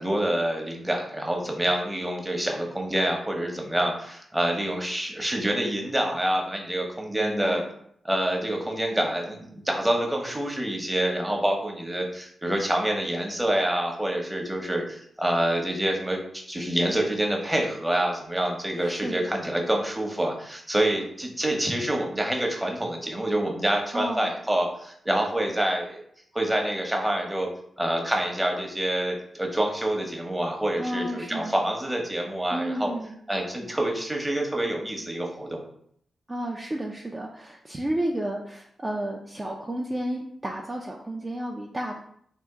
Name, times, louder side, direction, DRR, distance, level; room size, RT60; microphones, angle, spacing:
voice 1, 0.0-7.6 8.0-16.2 16.5-26.0 26.3-27.5 27.8-32.9 33.3-35.6, right 1 dB, 10° right, 1 dB, 0.9 m, -27 dB
voice 2, 7.1-7.6 18.8-19.2 23.9-24.2 30.8-31.5 32.5-33.1 36.3-42.0, right 1 dB, 30° right, -2 dB, 0.5 m, -32 dB
2.8 x 2.4 x 3.6 m, 0.66 s
supercardioid pair, 45°, 0 cm